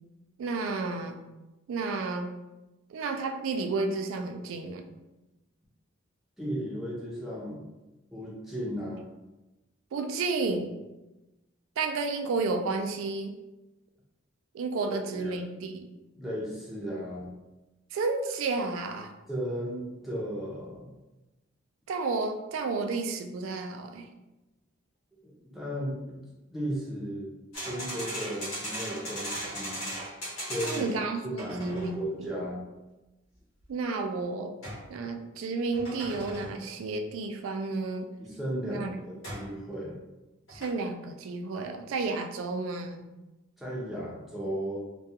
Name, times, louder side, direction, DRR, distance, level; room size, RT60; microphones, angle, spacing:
voice 1, 0.4-1.2 1.7-2.3 2.9-4.9 9.9-10.8 11.8-13.3 14.5-15.9 17.9-19.1 21.9-24.1 30.6-32.3 33.7-34.6 34.9-38.1 38.7-39.0 40.5-43.0, right 3 dB, 75° right, 6 dB, 0.3 m, -31 dB
voice 2, 6.4-7.6 8.1-9.0 14.8-15.4 16.2-17.3 19.3-20.9 25.2-26.2 26.5-27.3 27.6-29.9 30.4-30.9 31.2-32.7 38.2-40.0 43.6-44.8, equal, ahead, -6 dB, 0.6 m, -35 dB
sound 1, 27.5-31.0 31.4-32.0 34.6-34.9 35.7-36.6 39.2-39.5 40.5-40.7, equal, 80° left, 1.0 m, -37 dB
2.3 x 2.3 x 2.7 m, 1.0 s
head